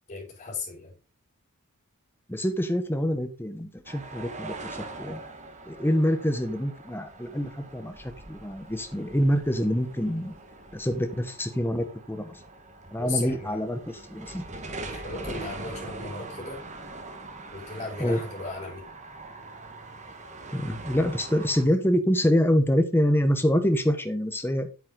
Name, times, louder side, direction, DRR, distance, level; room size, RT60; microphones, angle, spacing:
voice 1, 0.1-0.9 13.0-13.6 14.8-16.6 17.5-18.9, left 3 dB, 30° left, -4 dB, 4.7 m, -36 dB
voice 2, 2.3-5.2 5.7-10.3 10.7-12.3 12.9-14.4 18.0-18.2 20.5-24.7, equal, 10° left, 8 dB, 1.1 m, -26 dB
sound 1, 3.9-21.7, right 2 dB, 30° right, 1.4 m, -42 dB
8.3 x 7.5 x 3.9 m, 0.33 s
head